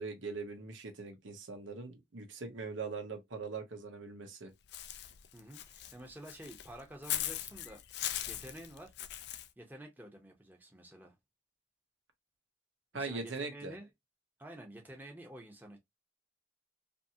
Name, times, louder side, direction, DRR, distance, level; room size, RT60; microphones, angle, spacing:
voice 1, 0.0-4.5 12.9-13.7, right 4 dB, 85° right, 0.9 m, -41 dB
Walk footsteps / Bird, 4.7-9.5, left 12 dB, 60° left, 0.4 m, -40 dB
voice 2, 5.3-8.9 9.6-11.2 12.9-13.9 14.4-15.8, right 1 dB, 10° right, 0.8 m, -50 dB
2.8 x 2.6 x 2.7 m
head